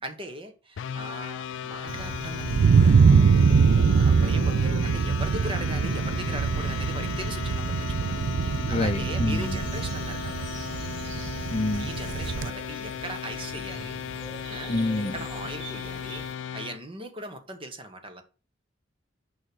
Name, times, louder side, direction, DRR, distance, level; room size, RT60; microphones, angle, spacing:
voice 1, 0.0-10.8 11.8-14.0 14.5-14.7 15.1-16.3 16.5-18.2, right 2 dB, 30° right, 1.4 m, -39 dB
sound 1, 0.8-16.8, left 8 dB, 75° left, 0.3 m, -36 dB
Thunder, 1.9-12.5, right 5 dB, 85° right, 0.4 m, -23 dB
voice 2, 8.6-9.6 11.5-11.9 14.7-15.2, left 2 dB, 30° left, 0.6 m, -27 dB
sound 2, 9.3-16.3, right 2 dB, 65° right, 3.5 m, -44 dB
6.4 x 5.6 x 6.3 m
head